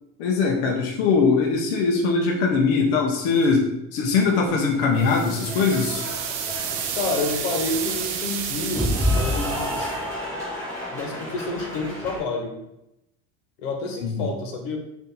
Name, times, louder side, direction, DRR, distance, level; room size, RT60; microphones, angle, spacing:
voice 1, 0.2-6.1 14.0-14.3, left 4 dB, 45° left, 0 dB, 0.5 m, -21 dB
Cheering / Applause, 4.5-12.2, equal, 10° left, 1.3 m, -30 dB
sound 1, 5.0-10.0, right 7 dB, 40° right, 0.4 m, -31 dB
voice 2, 6.9-10.0 10.9-12.5 13.6-14.8, left 3 dB, 75° left, 3 dB, 1.0 m, -29 dB
4.1 x 2.5 x 3.9 m, 0.87 s
cardioid pair, 180°, 31 cm